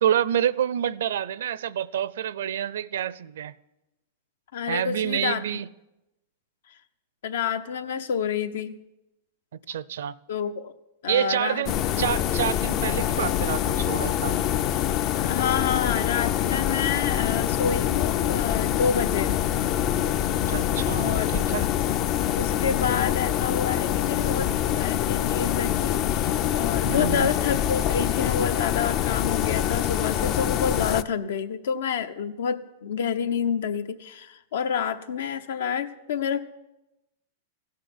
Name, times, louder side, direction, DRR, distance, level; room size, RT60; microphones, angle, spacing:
voice 1, 0.0-3.5 4.7-5.7 9.7-10.1 11.1-14.3 20.5-21.7 26.9-27.3, right 10 dB, 80° right, 20 dB, 0.5 m, -27 dB
voice 2, 4.5-5.4 7.2-8.8 10.3-10.7 11.0-11.8 15.2-19.4 20.9-21.5 22.3-36.4, left 7 dB, 75° left, 11 dB, 0.9 m, -28 dB
sound 1, 11.6-31.0, left 11 dB, 35° left, 0.4 m, -25 dB
15.5 x 6.6 x 9.8 m, 0.93 s
supercardioid pair, 150°, 0 cm